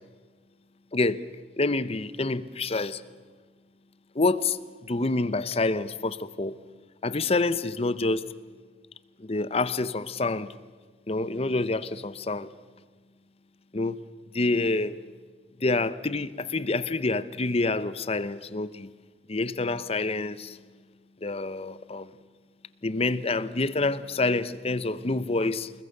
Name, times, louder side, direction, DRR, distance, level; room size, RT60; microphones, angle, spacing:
voice 1, 0.9-1.2 1.6-3.0 4.1-6.5 7.0-8.2 9.2-10.6 11.1-12.5 13.7-14.0 14.3-15.0 15.6-18.9 19.3-20.6 21.2-22.1 22.8-25.7, left 3 dB, 35° left, 0.8 m, -27 dB
28.0 x 21.5 x 6.6 m
head